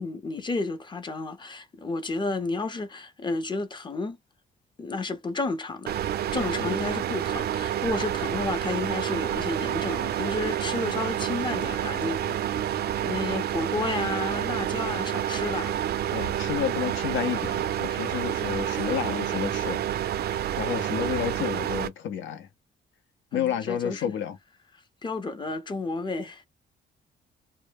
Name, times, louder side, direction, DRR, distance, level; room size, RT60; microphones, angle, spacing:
voice 1, 0.0-4.2 4.8-6.0 6.3-15.8 18.7-19.2 23.3-24.1 25.0-26.5, left 3 dB, 25° left, 0.5 m, -32 dB
sound 1, 5.9-21.9, right 10 dB, 55° right, 0.4 m, -29 dB
voice 2, 16.1-19.8 20.6-22.5 23.3-24.4, left 9 dB, 75° left, 0.6 m, -30 dB
2.1 x 2.0 x 3.3 m
cardioid pair, 90°, 20 cm